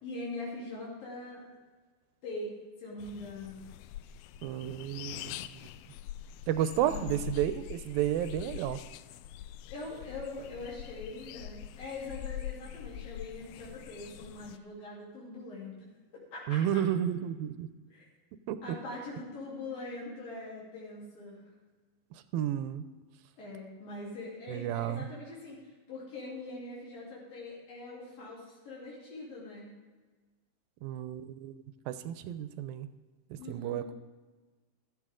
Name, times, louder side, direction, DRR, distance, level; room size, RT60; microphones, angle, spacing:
voice 1, 0.0-1.4 2.2-2.5 2.8-3.7 6.8-7.3 9.7-15.9 16.1-16.8 17.9-18.1 18.6-21.4 23.4-29.7 33.4-33.9, left 2 dB, 70° left, -6 dB, 5.1 m, -42 dB
sound 1, 3.0-14.6, left 11 dB, 90° left, 2.4 m, -44 dB
voice 2, 4.4-5.4 6.5-8.8 16.5-17.7 18.5-18.6 22.3-22.9 24.5-25.1 30.8-31.5 31.9-32.9 33.3-33.9, right 11 dB, 85° right, 11 dB, 2.5 m, -32 dB
15.0 x 12.5 x 3.7 m, 1.3 s
omnidirectional pair, 4.1 m